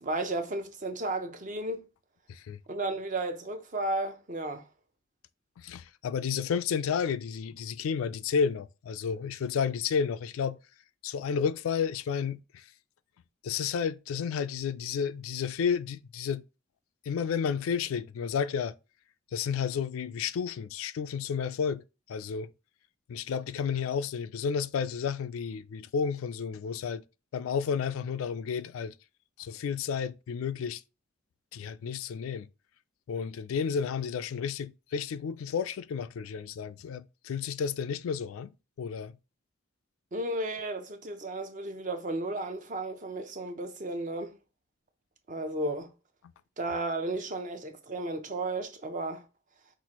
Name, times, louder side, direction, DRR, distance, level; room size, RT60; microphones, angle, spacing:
voice 1, 0.0-1.8 2.7-4.7 40.1-44.4 45.3-45.9 46.6-49.2, right 2 dB, 40° right, 0.6 m, -33 dB
voice 2, 5.6-10.6 11.0-12.7 13.4-16.4 17.1-18.7 19.3-21.8 22.1-22.5 23.1-27.0 27.3-28.9 29.4-30.8 31.5-32.5 33.1-38.5 38.8-39.2, left 6 dB, 85° left, 0.3 m, -31 dB
5.8 x 2.4 x 2.9 m
head